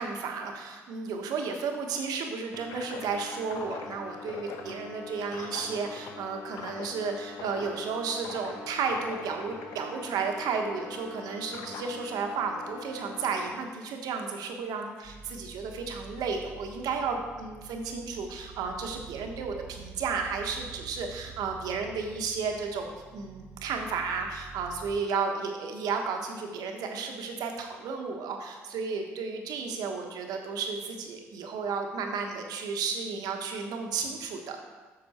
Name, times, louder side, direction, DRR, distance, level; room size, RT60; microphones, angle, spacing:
voice 1, 0.0-34.6, right 5 dB, 75° right, 3 dB, 1.1 m, -33 dB
sound 1, 2.5-13.5, left 4 dB, 80° left, 0.8 m, -43 dB
sound 2, 15.0-25.0, right 6 dB, 55° right, 1.1 m, -48 dB
7.9 x 6.0 x 4.3 m, 1.3 s
supercardioid pair, 55°, 7 cm